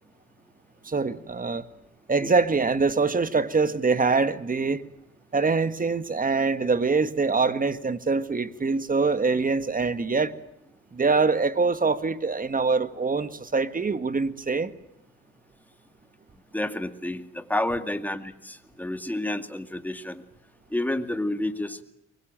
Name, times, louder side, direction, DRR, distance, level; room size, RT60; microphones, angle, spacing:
voice 1, 0.8-1.7 2.1-4.8 5.3-10.3 10.9-14.7, right 4 dB, 25° right, 12 dB, 1.7 m, -24 dB
voice 2, 16.5-20.2 20.7-21.8, left 1 dB, 5° left, 8 dB, 2.2 m, -30 dB
24.0 x 22.0 x 9.0 m, 0.80 s
cardioid pair, 90°, 30 cm